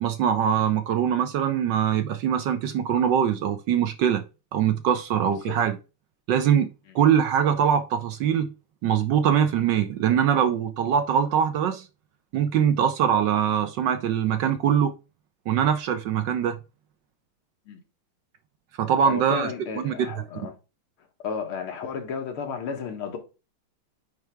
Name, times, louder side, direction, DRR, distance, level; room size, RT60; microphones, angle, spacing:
voice 1, 0.0-4.2 4.5-5.8 6.3-6.7 6.9-8.5 8.8-11.9 12.3-14.9 15.5-16.6 18.8-19.5 19.8-19.9, right 8 dB, 70° right, 1.2 m, -22 dB
voice 2, 19.1-20.5 21.2-23.2, left 6 dB, 80° left, 2.2 m, -33 dB
9.0 x 3.4 x 3.4 m
omnidirectional pair, 2.3 m